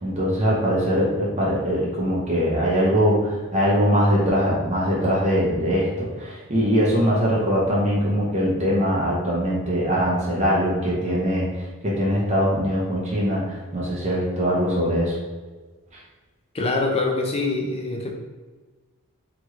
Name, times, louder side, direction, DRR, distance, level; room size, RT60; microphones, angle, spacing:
voice 1, 0.0-15.2 15.9-16.0, equal, 30° right, -5 dB, 0.7 m, -22 dB
voice 2, 16.5-18.1, left 3 dB, 25° left, 0 dB, 0.4 m, -24 dB
3.1 x 2.9 x 2.4 m, 1.3 s
head